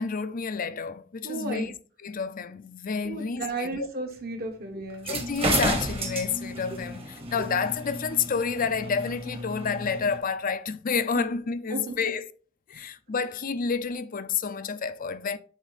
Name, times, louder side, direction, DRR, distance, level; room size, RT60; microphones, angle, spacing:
voice 1, 0.0-1.7 2.0-3.9 5.0-12.3 12.7-15.4, left 5 dB, 45° left, 0.5 m, -29 dB
voice 2, 1.2-1.7 3.0-5.2 11.7-12.1 12.7-12.9, right 2 dB, 50° right, 1.4 m, -34 dB
sound 1, 4.9-10.2, right 2 dB, 30° right, 1.2 m, -32 dB
8.1 x 3.5 x 4.1 m
head